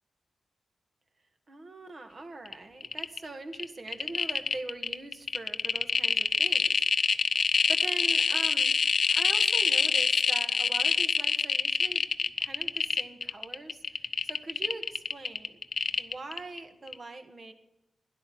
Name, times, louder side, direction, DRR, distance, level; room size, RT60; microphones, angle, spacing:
voice 1, 1.5-6.8 7.1-7.4 7.7-8.8 9.1-12.0 12.4-15.6 16.0-17.5, right 2 dB, 50° right, 7 dB, 1.9 m, -42 dB
sound 1, 2.4-2.5 2.8-3.2 3.5-16.6 16.9-17.0, left 5 dB, 65° left, 0.7 m, -26 dB
13.0 x 11.0 x 9.4 m, 0.91 s
cardioid pair, 75°, 0 cm